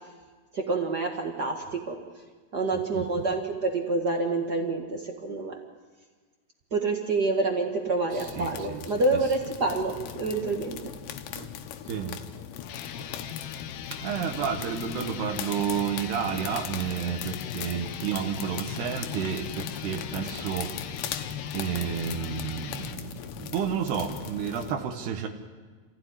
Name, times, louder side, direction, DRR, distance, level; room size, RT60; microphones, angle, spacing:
voice 1, 0.5-2.0 2.5-5.6 6.7-10.8, right 3 dB, 60° right, 2 dB, 1.0 m, -27 dB
voice 2, 2.7-3.2 8.1-8.9 11.3-11.5 11.9-12.2 14.0-25.3, right 8 dB, 75° right, 3 dB, 3.3 m, -31 dB
sound 1, 8.1-24.7, left 9 dB, 90° left, 3.3 m, -39 dB
sound 2, 12.6-23.0, left 9 dB, 70° left, 2.7 m, -39 dB
26.5 x 16.0 x 9.8 m, 1.4 s
omnidirectional pair, 4.8 m